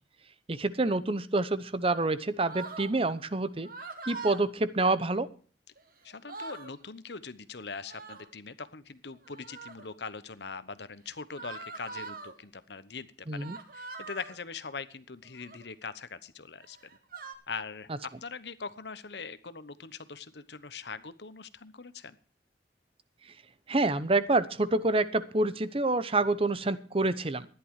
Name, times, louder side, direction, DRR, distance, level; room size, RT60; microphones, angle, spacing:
voice 1, 0.5-3.7 4.1-5.3 13.3-13.6 23.7-27.5, right 2 dB, 30° right, 14 dB, 0.8 m, -27 dB
sound 1, 2.5-2.9 3.6-4.4 5.8-5.9 6.1-6.7 7.8-8.3 9.2-9.9 11.4-12.3 13.4-14.4 15.3-15.7 16.6-17.3, right 4 dB, 55° right, 2.1 m, -43 dB
voice 2, 6.0-16.8 17.5-22.2, left 4 dB, 70° left, 14 dB, 1.1 m, -42 dB
14.0 x 11.0 x 4.8 m, 0.41 s
head